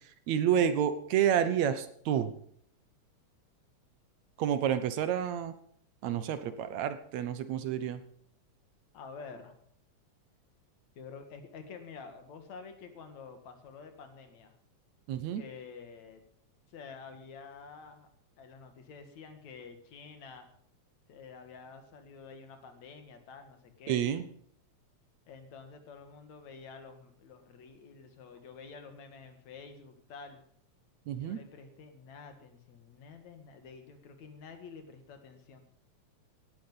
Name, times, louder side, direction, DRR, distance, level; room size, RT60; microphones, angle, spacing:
voice 1, 0.3-2.3 4.4-5.5 6.0-8.0 15.1-15.4 23.9-24.3 31.1-31.4, right 9 dB, 75° right, 11 dB, 2.2 m, -29 dB
voice 2, 8.9-9.5 11.0-14.6 15.3-16.2 16.7-18.1 18.4-20.5 21.1-24.1 25.3-30.4 31.1-35.6, left 5 dB, 70° left, 6 dB, 3.0 m, -49 dB
17.0 x 11.0 x 5.5 m, 0.64 s
omnidirectional pair, 3.4 m